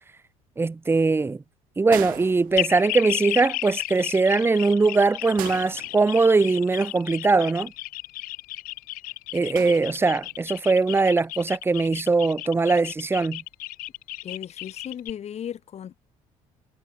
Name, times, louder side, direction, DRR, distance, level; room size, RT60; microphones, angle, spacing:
voice 1, 0.6-1.4 1.8-7.7 9.3-13.4, right 3 dB, 15° right, 0.8 m, -21 dB
sound 1, 1.9-3.1 5.4-6.6 9.5-10.5 11.7-11.9, right 18 dB, 75° right, 3.3 m, -39 dB
sound 2, 2.6-15.1, left 19 dB, 75° left, 2.4 m, -34 dB
voice 2, 14.2-16.0, left 9 dB, 50° left, 6.6 m, -36 dB
cardioid pair, 95°, 15 cm